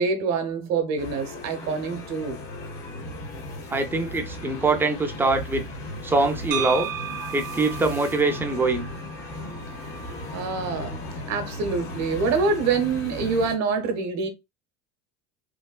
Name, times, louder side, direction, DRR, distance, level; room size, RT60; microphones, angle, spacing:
voice 1, 0.0-2.4 10.3-11.0 11.3-14.3, right 4 dB, 45° right, 0.8 m, -25 dB
sound 1, 1.0-13.5, left 1 dB, 80° left, 1.2 m, -36 dB
voice 2, 3.7-5.6 6.0-6.9 7.3-8.9, right 3 dB, 5° right, 0.4 m, -23 dB
sound 2, 6.5-10.6, right 10 dB, 85° right, 0.6 m, -35 dB
3.2 x 2.1 x 2.3 m
supercardioid pair, 115°, 36 cm